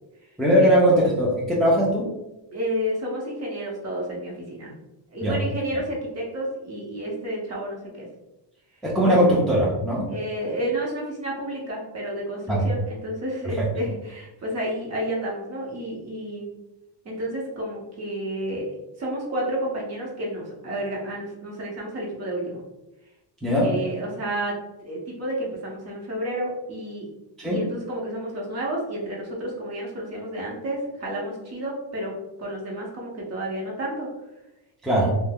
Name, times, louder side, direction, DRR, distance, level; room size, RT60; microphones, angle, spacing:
voice 1, 0.4-2.1 5.2-5.3 8.8-10.1 12.5-12.7 13.4-13.7 23.4-23.7 27.4-27.6 34.8-35.1, equal, ahead, -6 dB, 0.4 m, -20 dB
voice 2, 2.5-4.7 5.1-8.1 9.0-9.1 10.1-16.5 17.0-22.6 23.5-24.6 24.8-27.1 27.4-32.1 32.4-34.1 34.9-35.1, right 1 dB, 35° right, -3 dB, 0.9 m, -31 dB
2.7 x 2.1 x 3.4 m, 0.95 s
cardioid pair, 150°, 42 cm